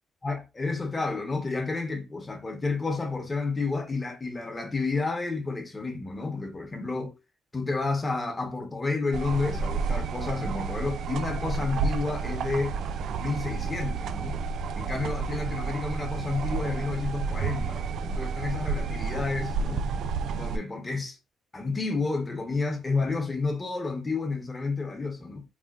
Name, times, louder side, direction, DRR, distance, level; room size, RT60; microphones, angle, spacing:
voice 1, 0.2-7.2 7.5-12.8 13.2-14.4 14.7-19.8 20.3-21.2 21.5-25.4, left 3 dB, 25° left, 1.1 m, -30 dB
sound 1, 9.1-20.6, right 5 dB, 70° right, 0.3 m, -31 dB
4.2 x 2.5 x 2.4 m
cardioid pair, 90°, 0 cm